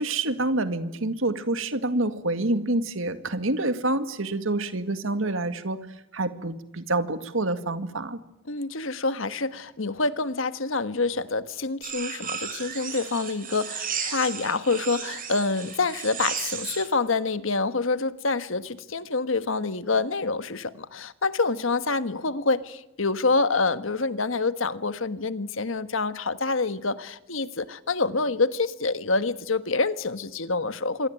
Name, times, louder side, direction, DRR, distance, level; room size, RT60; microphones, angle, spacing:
voice 1, 0.0-5.8 6.1-8.2, right 2 dB, 70° right, 2.0 m, -27 dB
voice 2, 8.5-31.1, left 3 dB, 70° left, 1.4 m, -27 dB
sound 1, 11.8-16.8, right 7 dB, 45° right, 6.6 m, -34 dB
27.0 x 23.5 x 9.1 m
head